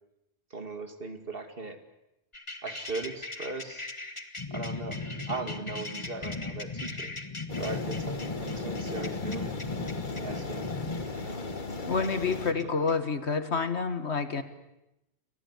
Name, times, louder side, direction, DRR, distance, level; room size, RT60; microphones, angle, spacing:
voice 1, 0.5-1.8 2.6-3.9 4.5-5.0 5.3-7.1 7.6-9.5 10.2-10.7 11.1-11.4, right 3 dB, 55° right, 7 dB, 2.7 m, -38 dB
sound 1, 2.3-12.9, left 3 dB, 25° left, 1.7 m, -37 dB
sound 2, 7.5-12.5, left 3 dB, 45° left, 1.9 m, -37 dB
voice 2, 11.8-14.4, left 4 dB, 80° left, 10 dB, 2.1 m, -28 dB
30.0 x 23.0 x 8.3 m, 0.88 s
omnidirectional pair, 1.1 m